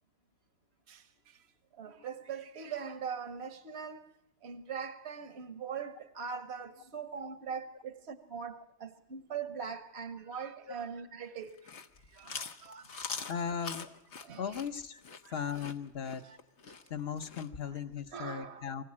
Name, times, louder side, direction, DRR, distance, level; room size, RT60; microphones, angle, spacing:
voice 1, 0.9-1.4 1.8-4.1 4.4-11.6 12.1-13.7 14.2-14.6 15.2-15.7 16.2-16.4 16.7-16.8 17.7-17.8 18.1-18.7, right 6 dB, 65° right, 1.4 m, -42 dB
Chewing mastication, 11.5-17.5, left 5 dB, 85° left, 1.5 m, -43 dB
voice 2, 13.3-13.9 14.4-15.0 15.3-16.2 16.9-18.8, left 7 dB, 60° left, 1.3 m, -37 dB
24.5 x 16.0 x 8.7 m
omnidirectional pair, 1.2 m